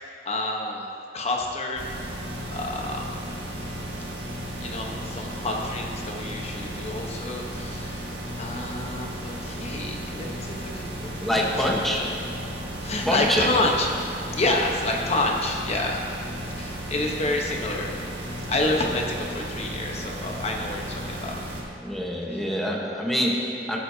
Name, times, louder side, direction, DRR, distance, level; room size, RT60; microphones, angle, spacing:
voice 1, 0.2-0.9 1.1-1.9 2.5-3.2 4.6-8.1 8.4-11.0 11.3-12.1 12.8-16.0 16.6-17.9 18.5-21.4 22.3-22.4, left 2 dB, 40° left, 0 dB, 1.1 m, -28 dB
sound 1, 1.8-21.6, equal, 70° right, 1.7 m, -34 dB
voice 2, 11.0-12.4 13.0-13.5 21.8-23.8, equal, ahead, -3 dB, 1.2 m, -26 dB
14.5 x 8.1 x 2.8 m, 2.9 s
head